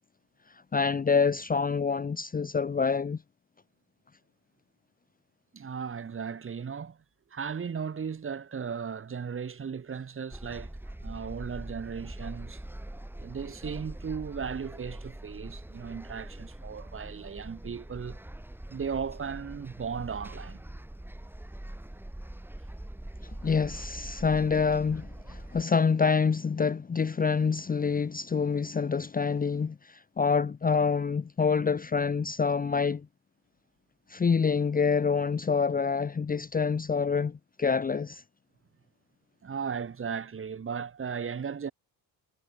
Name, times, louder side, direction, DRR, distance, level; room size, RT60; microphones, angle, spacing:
voice 1, 0.7-3.2 23.2-33.1 34.1-38.2, left 5 dB, 20° left, 0.9 m, -27 dB
voice 2, 5.5-7.0 7.3-10.7 11.0-12.6 13.2-18.2 18.7-20.6 39.4-41.7, right 6 dB, 30° right, 2.7 m, -36 dB
sound 1, 10.3-25.6, right 1 dB, 5° right, 5.2 m, -43 dB
cardioid pair, 135°, 40 cm